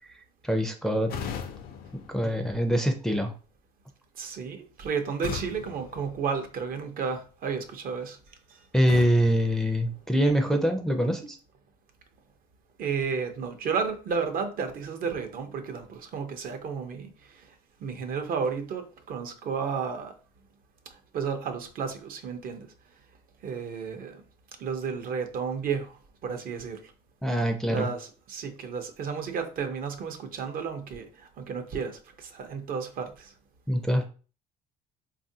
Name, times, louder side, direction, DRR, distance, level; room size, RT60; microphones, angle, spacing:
voice 1, 0.4-1.1 2.1-3.3 8.7-11.4 27.2-27.9 33.7-34.1, equal, 5° left, 0.4 m, -24 dB
sound 1, 1.1-3.1 5.2-6.9 8.9-10.5, left 7 dB, 65° left, 0.5 m, -40 dB
voice 2, 4.1-8.7 12.8-17.5 17.8-20.1 20.9-22.7 23.4-24.2 24.6-26.9 27.7-33.3, right 6 dB, 60° right, 0.7 m, -32 dB
3.5 x 2.4 x 2.7 m
cardioid pair, 110°, 17 cm